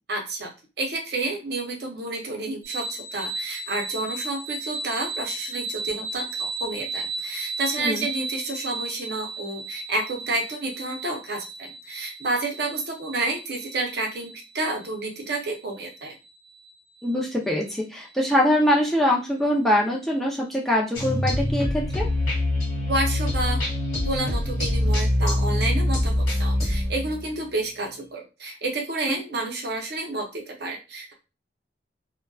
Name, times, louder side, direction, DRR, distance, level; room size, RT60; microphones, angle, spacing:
voice 1, 0.1-0.5 0.8-16.2 22.9-23.6 24.0-31.1, right 2 dB, 55° right, 1 dB, 0.6 m, -30 dB
sound 1, 2.6-18.2, right 3 dB, 30° right, 1.1 m, -35 dB
voice 2, 17.0-22.1 29.1-29.2, left 1 dB, ahead, -3 dB, 0.4 m, -23 dB
sound 2, 20.9-27.4, left 1 dB, 50° left, 1.2 m, -24 dB
2.5 x 2.1 x 2.3 m, 0.29 s
head